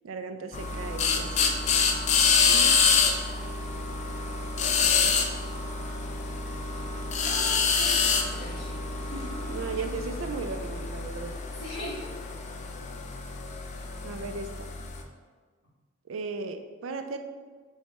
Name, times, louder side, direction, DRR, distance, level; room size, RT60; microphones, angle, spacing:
voice 1, 0.0-1.8 2.4-2.8 4.7-5.2 9.5-11.4 14.0-14.7 16.1-17.2, right 4 dB, 85° right, 7 dB, 0.4 m, -36 dB
sound 1, 0.5-15.0, left 5 dB, 35° left, 0.3 m, -27 dB
voice 2, 7.2-9.8 11.6-12.1, left 1 dB, 75° left, -6 dB, 1.4 m, -40 dB
4.7 x 2.2 x 4.0 m, 1.5 s
head